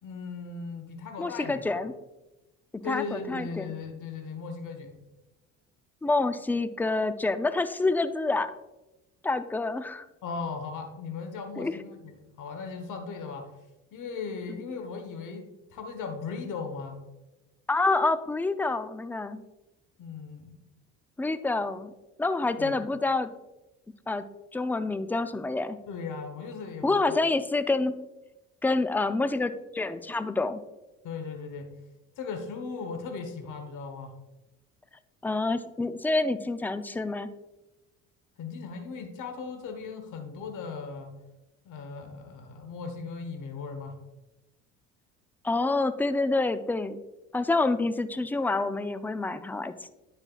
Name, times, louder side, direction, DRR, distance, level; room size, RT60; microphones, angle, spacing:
voice 1, 0.0-1.8 2.8-4.9 10.2-13.5 13.9-17.0 20.0-20.6 22.6-22.8 25.9-27.2 31.0-31.7 32.2-34.1 38.4-41.1 41.6-44.0, left 5 dB, 55° left, 6 dB, 1.3 m, -37 dB
voice 2, 1.2-1.9 2.7-3.7 6.0-8.5 9.2-10.1 11.6-11.8 14.5-14.6 17.7-19.4 21.2-21.9 22.2-23.3 24.1-24.3 24.5-25.8 26.8-28.0 28.6-30.6 35.2-37.3 45.4-47.0 47.3-49.9, left 3 dB, 5° left, 12 dB, 0.4 m, -27 dB
9.6 x 5.8 x 2.4 m, 0.99 s
hypercardioid pair, 60°, 36 cm